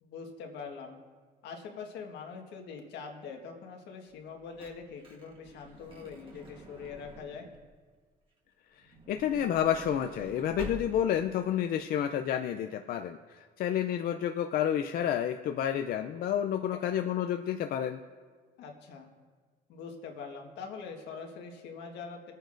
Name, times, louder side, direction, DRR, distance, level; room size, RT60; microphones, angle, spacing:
voice 1, 0.0-1.0 1.4-7.5 18.6-19.1 19.7-22.3, left 5 dB, 85° left, 2 dB, 1.6 m, -43 dB
Truck / Door, 4.2-7.7 8.7-11.3 12.0-12.1 12.2-12.4, right 1 dB, 30° right, 1.6 m, -48 dB
voice 2, 9.1-18.0, left 9 dB, 60° left, 7 dB, 0.5 m, -30 dB
24.5 x 9.1 x 2.6 m, 1.5 s
cardioid pair, 110°, 17 cm